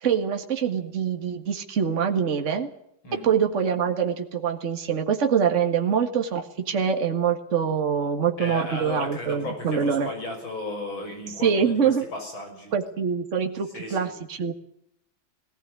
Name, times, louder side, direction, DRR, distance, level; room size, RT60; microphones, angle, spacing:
voice 1, 0.0-2.7 3.2-10.1 11.4-12.0 12.7-14.5, right 7 dB, 40° right, 4 dB, 2.0 m, -24 dB
voice 2, 8.4-12.7 13.7-14.1, left 2 dB, 85° left, 3 dB, 7.2 m, -35 dB
18.5 x 18.5 x 9.8 m, 0.73 s
omnidirectional pair, 2.1 m